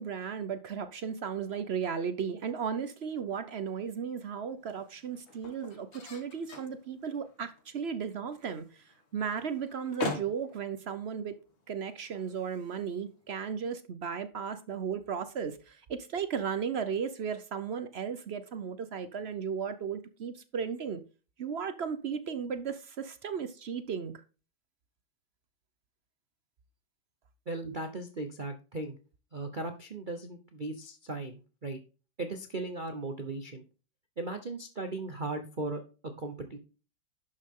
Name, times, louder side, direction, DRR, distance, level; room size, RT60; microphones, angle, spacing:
voice 1, 0.0-8.8 9.1-11.3 11.7-21.0 21.4-24.1, right 7 dB, 70° right, 0.6 m, -35 dB
sound 1, 3.1-13.4, left 3 dB, 75° left, 2.9 m, -45 dB
voice 2, 27.5-29.0 29.3-31.8 32.2-33.6 34.2-36.6, right 2 dB, 35° right, 0.8 m, -37 dB
11.5 x 6.2 x 3.7 m
omnidirectional pair, 2.2 m